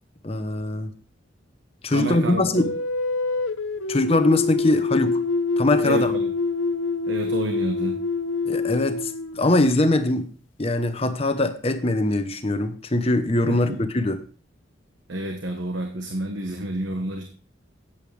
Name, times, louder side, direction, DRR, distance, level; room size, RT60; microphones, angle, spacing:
voice 1, 0.2-0.9 1.8-2.7 3.9-5.2 5.6-6.1 8.4-10.3 10.6-14.2, left 2 dB, 30° left, 9 dB, 0.9 m, -22 dB
voice 2, 1.9-2.7 5.8-6.3 7.1-8.0 13.5-13.8 15.1-17.2, right 1 dB, 75° right, 4 dB, 1.2 m, -29 dB
sound 1, 2.6-9.9, left 4 dB, 80° left, 0.9 m, -26 dB
11.0 x 8.8 x 3.3 m, 0.39 s
head